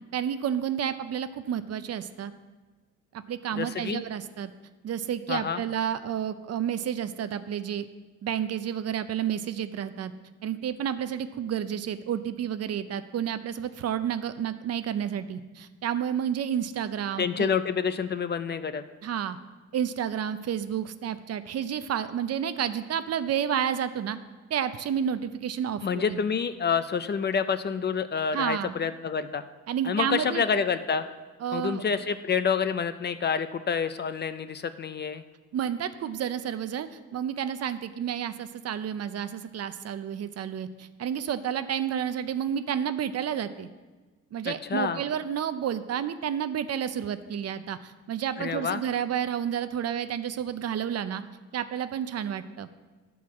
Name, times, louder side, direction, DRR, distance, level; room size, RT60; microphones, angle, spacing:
voice 1, 0.1-2.3 3.1-4.5 4.8-7.9 8.2-10.1 10.4-17.5 19.0-19.4 19.7-24.2 24.5-26.2 28.3-28.8 29.7-30.4 31.4-31.8 35.5-43.7 44.3-51.2 51.5-52.7, right 9 dB, 55° right, 12 dB, 0.6 m, -30 dB
voice 2, 3.5-4.0 5.3-5.6 17.2-18.8 25.8-29.4 29.8-31.1 31.5-35.2 44.4-45.0 48.4-48.8, left 6 dB, 35° left, 12 dB, 0.5 m, -28 dB
10.0 x 4.7 x 7.1 m, 1.3 s
cardioid pair, 90°, 30 cm